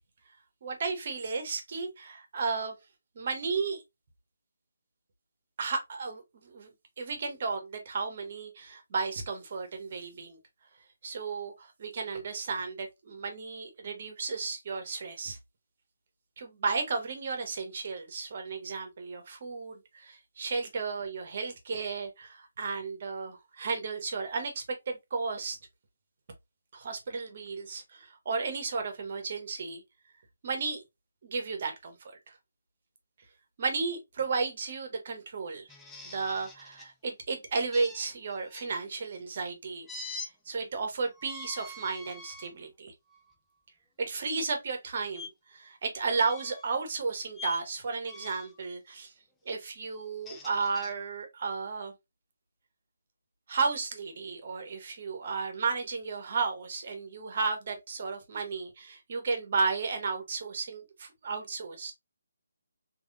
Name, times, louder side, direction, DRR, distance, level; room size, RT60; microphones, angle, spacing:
voice 1, 0.6-2.7 3.1-3.8 5.6-6.7 7.0-10.4 11.0-15.4 16.4-25.6 26.7-29.8 30.4-30.8 31.2-32.0 33.6-35.7 36.0-42.9 44.0-49.1 49.4-51.9 53.5-61.9, right 4 dB, 45° right, 1.2 m, -33 dB
sound 1, 35.7-36.9 37.7-38.7 39.9-40.3 41.1-42.5 43.1-43.3 45.1-45.3 46.1-46.7 47.3-47.6 48.1-48.6 50.0-50.9, left 3 dB, 5° left, 0.6 m, -44 dB
3.5 x 3.1 x 2.5 m
figure-of-eight pair, 155°, 0 cm